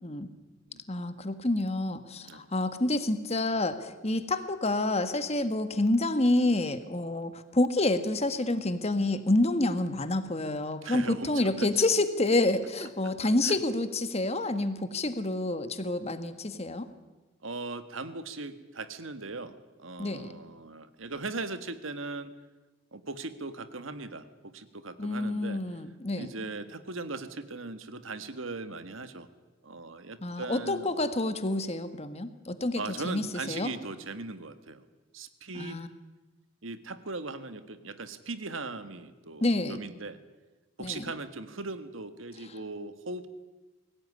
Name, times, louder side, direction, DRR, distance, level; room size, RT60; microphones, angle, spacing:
voice 1, 0.9-16.9 20.0-20.3 25.0-26.3 30.2-33.7 35.5-35.9 39.4-39.8 40.8-41.0, left 2 dB, 30° left, 11 dB, 1.6 m, -28 dB
voice 2, 10.8-11.7 13.4-13.6 17.4-22.3 22.9-25.6 26.2-29.3 29.6-30.9 32.7-34.8 35.1-35.8 36.6-40.2 40.8-43.3, right 3 dB, 70° right, 11 dB, 1.7 m, -39 dB
23.0 x 17.0 x 9.8 m, 1.2 s
head